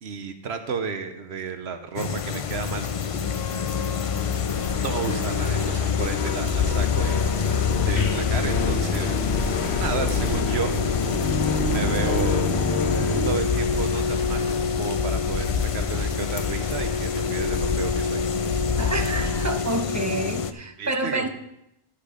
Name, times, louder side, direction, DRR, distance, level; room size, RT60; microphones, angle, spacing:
voice 1, 0.0-2.9 4.7-7.3 7.9-9.2 9.7-10.8 11.7-12.4 13.2-18.2 20.8-21.3, right 5 dB, 75° right, 8 dB, 1.1 m, -32 dB
sound 1, 2.0-20.5, left 6 dB, 50° left, 0.4 m, -27 dB
sound 2, 3.2-13.4, left 3 dB, 85° left, 1.2 m, -29 dB
sound 3, 4.4-19.5, left 4 dB, 65° left, 1.4 m, -31 dB
voice 2, 18.8-21.3, right 2 dB, 15° right, 6 dB, 0.8 m, -28 dB
11.5 x 6.1 x 5.0 m, 0.82 s
omnidirectional pair, 1.1 m